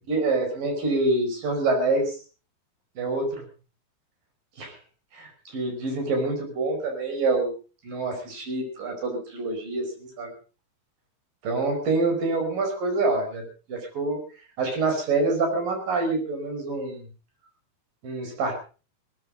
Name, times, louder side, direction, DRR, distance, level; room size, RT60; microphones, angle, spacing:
voice 1, 0.1-2.2 3.0-3.4 4.6-4.8 5.1-7.5 7.8-10.3 11.4-13.4 13.7-14.2 14.6-17.1 18.0-18.6, right 3 dB, 60° right, 4 dB, 6.8 m, -26 dB
18.5 x 14.5 x 5.1 m, 0.37 s
omnidirectional pair, 4.5 m